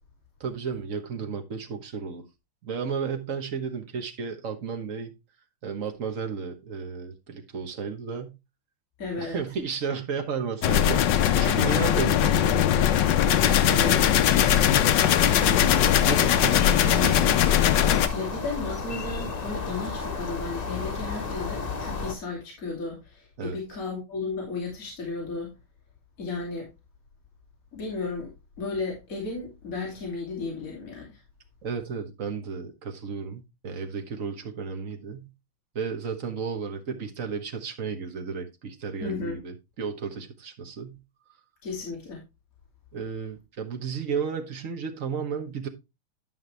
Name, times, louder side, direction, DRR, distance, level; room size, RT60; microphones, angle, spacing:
voice 1, 0.4-2.2 2.6-5.1 5.6-8.3 9.2-12.9 13.4-14.1 16.0-17.3 23.4-23.6 31.6-35.3 35.7-41.0 42.9-45.7, right 6 dB, 45° right, 1.3 m, -33 dB
voice 2, 9.0-9.4 13.6-14.0 18.1-25.5 26.2-26.7 27.7-28.3 28.6-31.2 39.0-39.4 41.6-42.2, left 3 dB, 40° left, 3.0 m, -34 dB
sound 1, 10.6-18.1, left 10 dB, 70° left, 1.2 m, -20 dB
sound 2, 15.1-22.1, left 4 dB, 85° left, 0.3 m, -33 dB
11.0 x 5.7 x 3.3 m
omnidirectional pair, 2.3 m